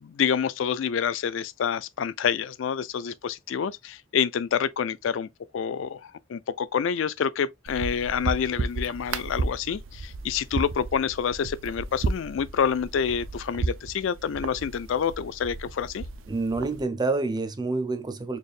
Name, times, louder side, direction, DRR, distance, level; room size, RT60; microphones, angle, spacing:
voice 1, 0.0-5.3 5.5-16.0, left 7 dB, 65° left, 0.4 m, -27 dB
sound 1, 7.7-16.8, right 3 dB, 75° right, 0.5 m, -33 dB
voice 2, 16.3-18.4, right 3 dB, 20° right, 0.5 m, -27 dB
4.2 x 3.4 x 2.4 m
head